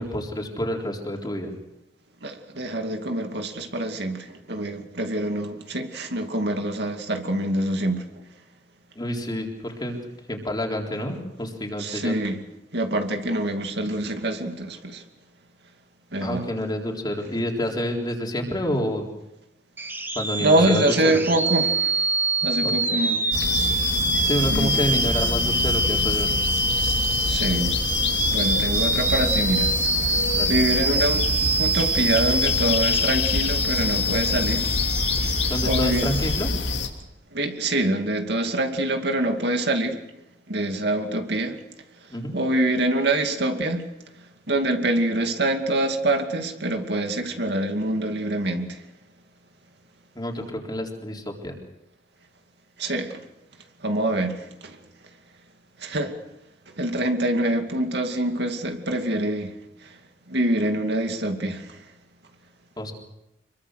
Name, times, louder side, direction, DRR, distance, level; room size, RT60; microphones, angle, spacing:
voice 1, 0.0-1.5 9.0-10.0 10.3-12.2 16.2-19.1 20.2-21.2 22.6-23.0 24.2-26.3 30.3-30.5 35.5-36.5 42.1-42.3 50.2-51.6 62.8-62.9, equal, 25° left, 1 dB, 3.9 m, -28 dB
voice 2, 2.2-8.1 11.8-12.4 12.7-15.0 16.1-16.4 20.4-22.1 22.4-23.5 24.5-24.7 27.2-27.7 28.3-30.2 30.5-31.3 31.6-34.7 35.6-36.1 37.3-40.0 40.5-41.6 42.0-43.9 44.5-48.8 52.8-53.2 53.8-54.8 55.8-56.2 56.7-59.5 59.8-60.0 60.3-61.8, right 1 dB, 65° right, 5 dB, 2.5 m, -25 dB
sound 1, 19.8-36.5, right 2 dB, 10° right, 1.6 m, -25 dB
sound 2, 23.3-36.9, left 3 dB, 75° left, 3.1 m, -26 dB
26.0 x 23.0 x 6.5 m, 0.89 s
head